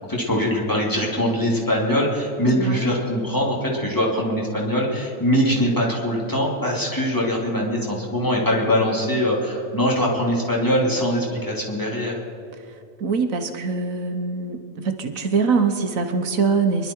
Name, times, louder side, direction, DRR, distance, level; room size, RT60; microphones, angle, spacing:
voice 1, 0.1-12.1, equal, 15° left, -3 dB, 2.8 m, -22 dB
voice 2, 2.5-2.9 13.0-14.6 14.8-16.9, right 5 dB, 65° right, 7 dB, 1.3 m, -23 dB
23.5 x 11.5 x 4.5 m, 2.7 s
omnidirectional pair, 1.6 m